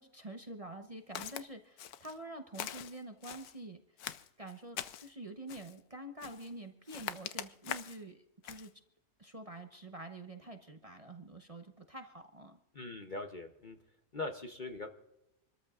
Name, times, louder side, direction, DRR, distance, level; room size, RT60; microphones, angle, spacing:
voice 1, 0.0-8.7 9.2-12.6, right 1 dB, 30° right, 4 dB, 0.9 m, -47 dB
Walk footsteps, 1.1-1.4 1.8-2.2 2.5-3.5 4.0-5.1 5.5-5.8 6.2-6.5 6.9-8.0 8.4-8.7, left 10 dB, 85° left, 1.2 m, -43 dB
voice 2, 12.7-13.8 14.1-14.9, left 2 dB, 40° left, 5 dB, 0.8 m, -41 dB
28.0 x 13.5 x 2.4 m, 0.91 s
omnidirectional pair, 1.6 m